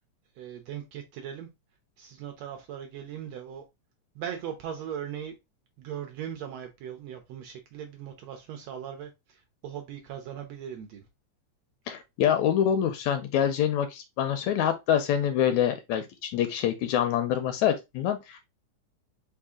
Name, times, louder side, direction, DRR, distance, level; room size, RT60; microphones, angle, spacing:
voice 1, 0.4-1.5 2.0-3.6 4.2-5.4 5.8-11.0, right 9 dB, 75° right, 1.6 m, -39 dB
voice 2, 11.9-18.4, left 9 dB, 80° left, 1.7 m, -26 dB
4.8 x 2.7 x 3.5 m
omnidirectional pair, 3.5 m